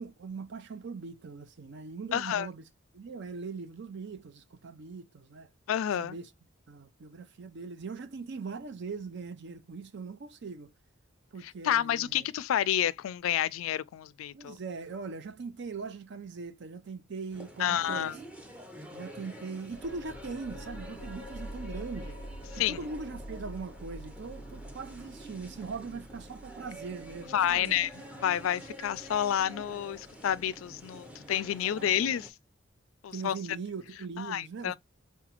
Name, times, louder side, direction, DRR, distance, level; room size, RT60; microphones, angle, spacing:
voice 1, 0.0-2.6 2.9-5.5 6.0-6.3 6.7-10.7 11.3-12.3 14.3-18.2 18.9-22.2 22.7-27.8 31.7-32.0 33.1-34.8, right 4 dB, 60° right, 0.5 m, -41 dB
voice 2, 2.1-2.5 5.7-6.2 11.4-14.6 17.6-18.1 22.5-22.8 27.3-27.9 28.2-32.3 33.0-33.4 34.2-34.8, left 10 dB, 85° left, 0.3 m, -29 dB
sound 1, 17.3-32.3, right 1 dB, 5° right, 0.7 m, -48 dB
sound 2, 19.7-30.8, equal, 35° left, 0.5 m, -46 dB
4.8 x 2.3 x 2.8 m
head